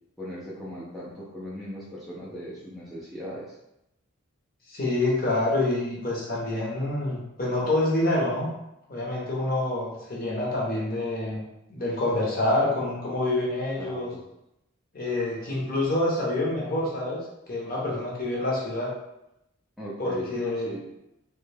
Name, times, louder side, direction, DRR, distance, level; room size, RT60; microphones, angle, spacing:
voice 1, 0.2-3.6 13.8-14.2 19.8-20.8, equal, ahead, -8 dB, 0.5 m, -38 dB
voice 2, 4.7-8.5 8.9-11.4 11.7-14.1 14.9-17.2 17.5-18.9 20.0-20.7, left 2 dB, 40° left, -4 dB, 0.8 m, -27 dB
3.2 x 2.2 x 3.3 m, 0.86 s
head